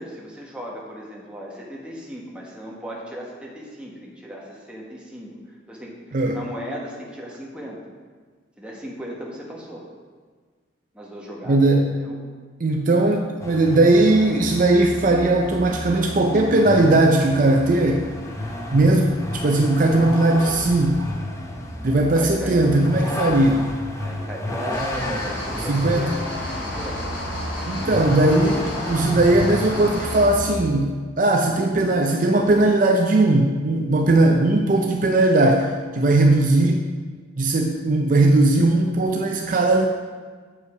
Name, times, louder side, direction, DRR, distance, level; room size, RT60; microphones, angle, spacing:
voice 1, 0.0-5.3 5.7-7.8 8.6-9.9 10.9-12.2 22.1-22.6 23.0-23.3 24.0-26.2 26.6-27.0, equal, 5° right, -3 dB, 1.2 m, -36 dB
voice 2, 11.5-11.9 12.6-18.1 18.7-21.1 21.8-23.6 25.7-26.1 27.7-36.9 37.4-39.9, right 2 dB, 45° right, 2 dB, 0.5 m, -18 dB
Vehicle, 13.4-30.6, left 1 dB, 15° left, 0.7 m, -32 dB
sound 1, 24.7-30.3, left 1 dB, 70° left, 2.4 m, -32 dB
8.1 x 5.5 x 4.9 m, 1.5 s
head